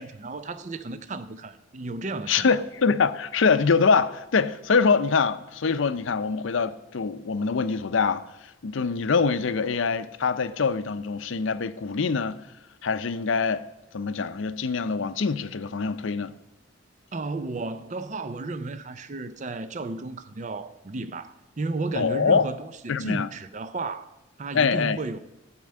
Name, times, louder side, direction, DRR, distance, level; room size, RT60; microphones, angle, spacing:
voice 1, 0.0-2.5 17.1-25.2, right 3 dB, 35° right, 0.5 m, -33 dB
voice 2, 2.3-8.3 8.6-12.4 12.8-13.6 13.9-16.3 21.9-22.5 22.9-23.3 24.5-25.0, left 5 dB, 70° left, 0.5 m, -24 dB
12.5 x 4.5 x 8.5 m
head